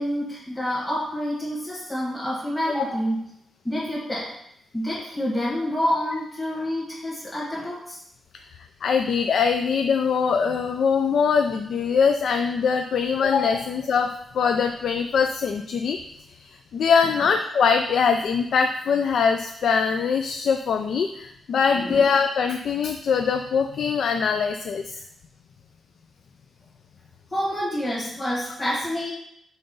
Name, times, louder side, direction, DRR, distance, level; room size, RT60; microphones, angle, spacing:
voice 1, 0.0-3.2 3.6-4.3 4.7-8.0 13.5-13.6 21.7-22.0 27.3-29.1, equal, 10° left, -7 dB, 1.4 m, -28 dB
voice 2, 8.8-16.0 16.3-25.0, left 6 dB, 65° left, 6 dB, 0.4 m, -22 dB
5.7 x 3.9 x 5.4 m, 0.76 s
wide cardioid pair, 150°, 0 cm